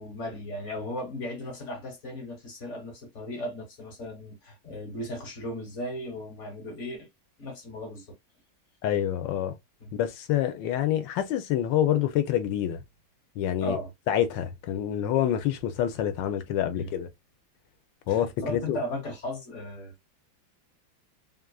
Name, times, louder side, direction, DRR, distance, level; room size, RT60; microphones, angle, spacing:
voice 1, 0.0-7.1 7.4-8.1 9.8-9.9 13.6-13.9 16.8-16.9 18.1-19.9, left 1 dB, 45° left, 1.2 m, -36 dB
voice 2, 8.8-9.6 10.0-12.8 13.4-13.8 14.1-17.1 18.1-18.8, left 10 dB, 75° left, 1.2 m, -27 dB
3.2 x 2.4 x 2.2 m
omnidirectional pair, 2.2 m